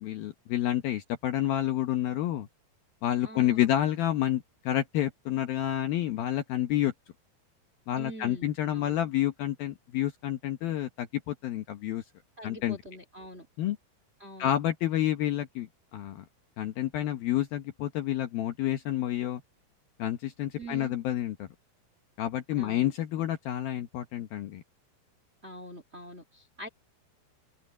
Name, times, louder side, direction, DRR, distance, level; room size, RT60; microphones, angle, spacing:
voice 1, 0.0-2.5 3.0-6.9 7.9-12.0 12.4-12.8 13.6-13.8 14.4-16.2 16.6-19.4 20.0-21.5 22.2-24.6, left 12 dB, 75° left, 2.2 m, -29 dB
voice 2, 3.2-3.7 8.0-9.0 12.4-13.5 14.2-14.5 20.5-21.0 22.6-22.9 25.4-26.7, right 1 dB, 40° right, 0.9 m, -44 dB
open air
omnidirectional pair, 5.7 m